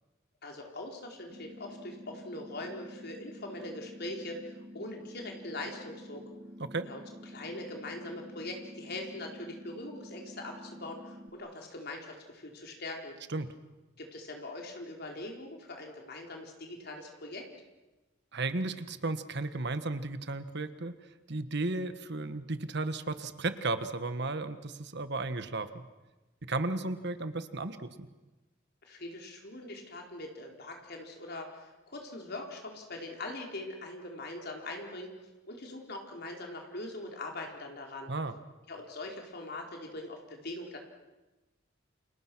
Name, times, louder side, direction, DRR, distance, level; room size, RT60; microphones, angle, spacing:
voice 1, 0.4-6.3 6.8-13.2 14.0-17.5 28.8-35.1 35.4-38.1 38.7-40.8, left 2 dB, 55° left, 1 dB, 4.4 m, -42 dB
sound 1, 1.3-11.3, equal, 25° right, 1.4 m, -49 dB
voice 2, 18.3-20.9 21.3-25.8 26.5-28.1 38.1-38.3, right 2 dB, 55° right, 11 dB, 1.4 m, -34 dB
30.0 x 28.0 x 6.2 m, 1.1 s
head